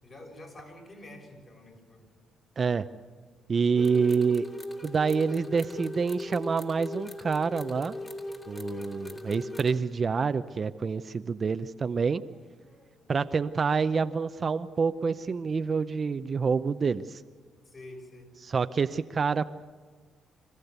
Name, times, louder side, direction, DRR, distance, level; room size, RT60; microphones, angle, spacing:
voice 1, 0.0-2.1 8.4-9.1 12.0-13.1 15.0-15.4 17.6-18.3, left 1 dB, 40° left, 1 dB, 6.6 m, -50 dB
voice 2, 2.6-2.9 3.5-4.5 4.8-8.0 8.5-12.2 13.1-17.2 18.5-19.4, right 5 dB, 40° right, 11 dB, 0.6 m, -27 dB
sound 1, 3.8-9.8, left 2 dB, 20° left, 2.8 m, -39 dB
25.5 x 14.5 x 8.1 m, 1.5 s
cardioid pair, 90°, 0 cm